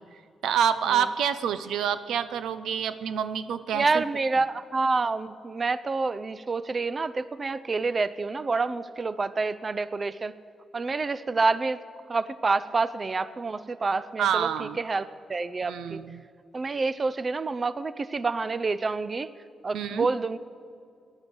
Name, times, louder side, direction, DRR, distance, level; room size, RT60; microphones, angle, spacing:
voice 1, 0.4-4.0 14.2-14.8 15.6-16.2 19.7-20.1, right 8 dB, 85° right, 13 dB, 0.6 m, -27 dB
voice 2, 3.7-10.3 10.7-11.8 12.1-16.0 16.5-19.3 19.6-20.4, right 3 dB, 35° right, 15 dB, 0.5 m, -28 dB
16.5 x 11.0 x 7.9 m, 2.4 s
cardioid pair, 80°, 0 cm